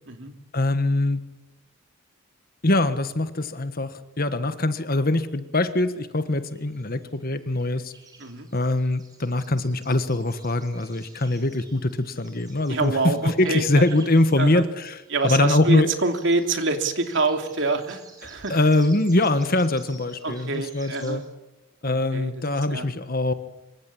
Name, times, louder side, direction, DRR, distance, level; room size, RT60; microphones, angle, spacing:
voice 1, 0.5-1.2 2.6-7.9 8.5-15.9 18.5-21.2 21.8-23.3, left 2 dB, 40° left, 11 dB, 1.5 m, -23 dB
sound 1, 5.9-14.7 15.0-21.1, right 3 dB, 20° right, 6.0 m, -52 dB
voice 2, 12.7-13.8 14.4-14.6 15.1-18.6 20.2-21.2 21.8-22.3 22.7-22.9, right 3 dB, 55° right, 5 dB, 2.9 m, -26 dB
26.0 x 24.5 x 8.6 m, 1.0 s
head